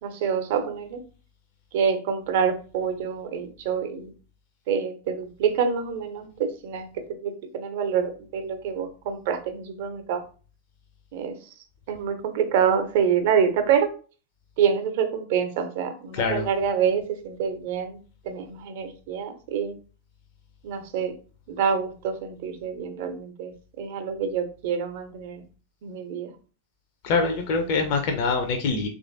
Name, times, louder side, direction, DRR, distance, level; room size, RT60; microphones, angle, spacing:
voice 1, 0.0-1.0 1.7-4.1 4.7-6.9 7.2-10.2 11.1-11.4 11.9-13.9 14.6-18.0 18.2-19.7 20.6-21.1 21.5-25.4 25.8-26.3, right 7 dB, 50° right, 7 dB, 0.5 m, -26 dB
voice 2, 16.1-16.5 27.0-28.9, left 4 dB, 45° left, 5 dB, 0.4 m, -24 dB
3.1 x 2.4 x 2.5 m, 0.37 s
figure-of-eight pair, 90°, 0 cm